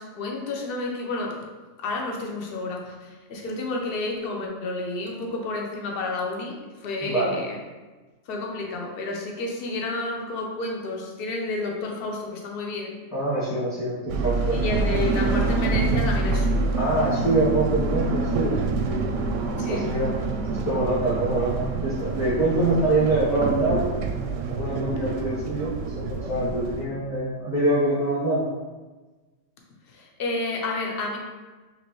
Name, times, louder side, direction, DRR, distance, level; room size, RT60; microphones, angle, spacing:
voice 1, 0.0-1.4 1.8-7.6 8.3-12.9 14.5-16.8 19.6-19.9 26.8-26.9 29.9-31.2, left 2 dB, 50° left, 0 dB, 0.8 m, -30 dB
voice 2, 7.0-7.4 13.1-14.6 16.8-19.1 19.7-20.1 20.5-23.9 24.5-28.4, right 2 dB, 20° left, -11 dB, 1.6 m, -25 dB
sound 1, 14.1-26.9, right 3 dB, 70° right, 0.8 m, -26 dB
5.1 x 3.2 x 3.0 m, 1.3 s
omnidirectional pair, 1.5 m